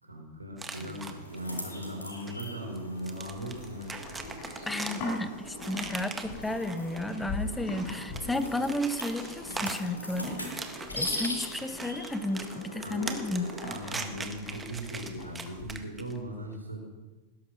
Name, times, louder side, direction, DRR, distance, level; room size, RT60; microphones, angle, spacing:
voice 1, 0.0-3.9 12.8-13.0 13.6-16.8, right 1 dB, 85° right, 2 dB, 3.7 m, -39 dB
sound 1, 0.6-1.4 2.3-2.4 2.8-7.3 7.7-16.2, right 4 dB, 15° right, 1.7 m, -41 dB
sound 2, 0.7-13.6, left 1 dB, 80° left, 4.1 m, -41 dB
Livestock farm animals working animals, 3.3-15.7, left 2 dB, 40° left, 6.0 m, -43 dB
voice 2, 4.7-13.5, left 1 dB, 5° left, 11 dB, 1.2 m, -33 dB
19.5 x 11.5 x 6.2 m, 1.2 s
figure-of-eight pair, 90°, 0 cm